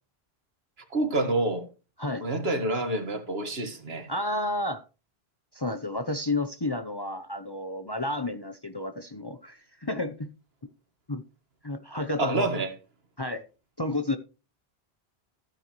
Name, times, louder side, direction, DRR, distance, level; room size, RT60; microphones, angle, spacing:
voice 1, 0.9-1.7 2.2-4.1 12.2-12.7, right 2 dB, 70° right, 1.9 m, -27 dB
voice 2, 4.1-4.8 5.5-10.3 11.1-11.2 11.6-12.5 13.2-13.4 13.8-14.2, left 2 dB, 25° left, 0.7 m, -31 dB
14.5 x 9.1 x 3.0 m
omnidirectional pair, 1.1 m